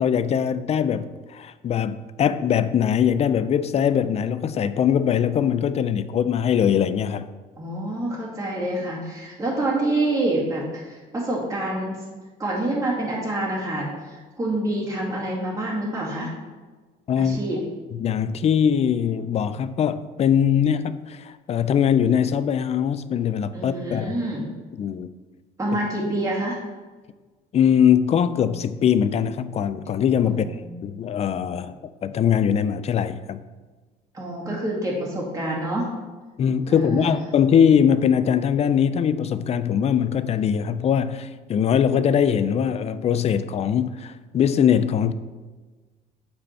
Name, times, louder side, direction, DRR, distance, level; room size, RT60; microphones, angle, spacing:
voice 1, 0.0-7.3 17.1-17.4 18.0-24.1 24.8-25.1 27.5-30.5 30.8-33.4 36.4-45.1, left 8 dB, 40° left, 13 dB, 0.4 m, -21 dB
voice 2, 7.6-12.0 12.4-16.3 17.2-17.6 23.5-24.5 25.6-26.6 30.3-30.8 34.1-35.9 36.7-37.2, right 1 dB, 20° right, -5 dB, 2.2 m, -27 dB
8.5 x 4.3 x 4.4 m, 1.3 s
cardioid pair, 110°, 17 cm